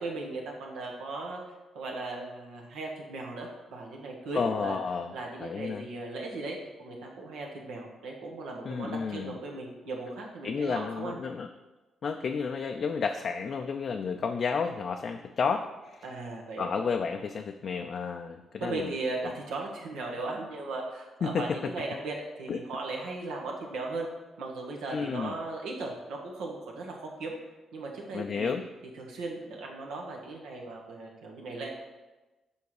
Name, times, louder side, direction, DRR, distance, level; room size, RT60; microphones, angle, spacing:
voice 1, 0.0-1.4 1.7-4.8 5.1-11.2 16.0-16.7 18.6-24.1 24.4-27.3 27.7-28.5 28.9-31.7, right 3 dB, 90° right, 0 dB, 1.4 m, -37 dB
voice 2, 4.3-5.1 5.4-5.8 8.7-9.4 10.4-11.5 12.0-16.0 16.6-18.9 21.2-21.7 22.5-22.6 24.9-25.3 28.1-28.6, left 5 dB, 55° left, 5 dB, 0.4 m, -31 dB
7.1 x 4.4 x 4.8 m, 1.1 s
cardioid pair, 85°, 0 cm